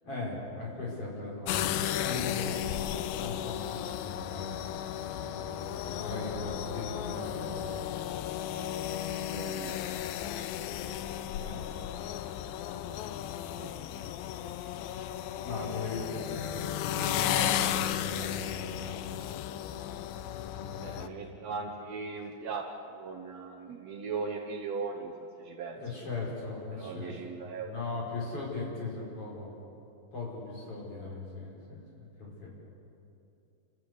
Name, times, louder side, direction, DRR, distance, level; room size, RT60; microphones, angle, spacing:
voice 1, 0.0-2.6 3.1-4.6 5.1-8.0 11.4-11.6 15.4-19.2 20.5-21.4 25.7-29.5 30.1-31.8 32.2-32.5, left 3 dB, 35° left, -4 dB, 5.9 m, -39 dB
sound 1, 1.5-21.1, left 11 dB, 80° left, 2.2 m, -34 dB
voice 2, 9.2-10.0 13.6-13.7 20.8-25.1 25.4-25.8 26.7-27.7, right 4 dB, 80° right, 2 dB, 1.5 m, -38 dB
29.5 x 14.5 x 8.3 m, 2.8 s
omnidirectional pair, 4.8 m